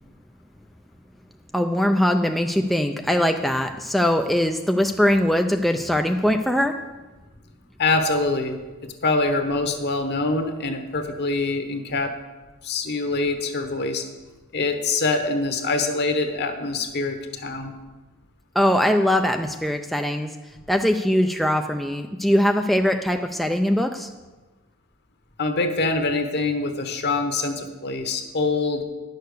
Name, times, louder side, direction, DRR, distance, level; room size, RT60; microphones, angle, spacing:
voice 1, 1.5-6.8 18.6-20.3 20.7-24.1, equal, ahead, 4 dB, 0.3 m, -21 dB
voice 2, 7.8-8.6 9.0-12.1 12.6-14.0 14.5-17.7 25.4-28.8, left 3 dB, 50° left, 6 dB, 1.2 m, -24 dB
10.5 x 6.6 x 6.6 m, 1.2 s
head